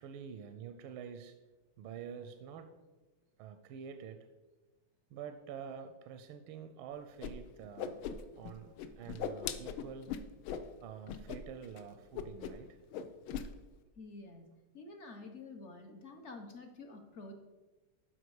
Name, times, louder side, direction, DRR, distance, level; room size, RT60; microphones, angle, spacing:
voice 1, 0.0-1.3 1.8-2.7 3.4-4.2 5.1-8.0 8.4-10.1 10.8-12.8, right 7 dB, 80° right, 7 dB, 1.4 m, -47 dB
Whoosh swoosh swish, 7.2-7.3 7.6-8.5 8.8-10.7 11.1-11.4 11.6-11.8 12.1-12.7 12.9-13.5, left 8 dB, 80° left, 1.4 m, -39 dB
voice 2, 14.0-17.3, left 3 dB, 50° left, 5 dB, 0.9 m, -49 dB
12.5 x 5.0 x 4.8 m, 1.2 s
omnidirectional pair, 2.3 m